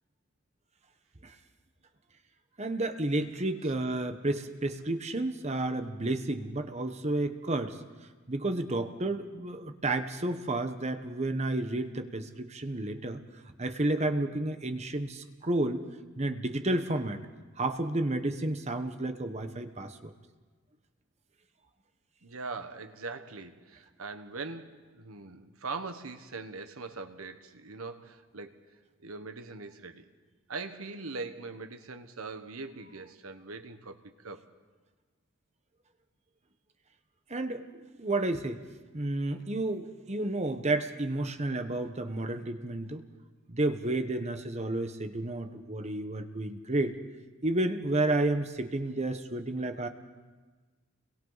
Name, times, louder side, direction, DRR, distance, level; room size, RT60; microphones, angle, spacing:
voice 1, 2.6-7.8 8.3-13.2 13.6-15.8 16.2-17.2 17.6-20.1 37.3-37.7 37.9-38.6 38.9-43.0 43.5-46.9 47.4-49.9, right 2 dB, 30° right, 7 dB, 1.1 m, -31 dB
voice 2, 22.2-28.5 29.0-30.1 30.5-34.5, right 3 dB, 85° right, 8 dB, 1.3 m, -41 dB
30.0 x 22.5 x 4.1 m, 1.3 s
head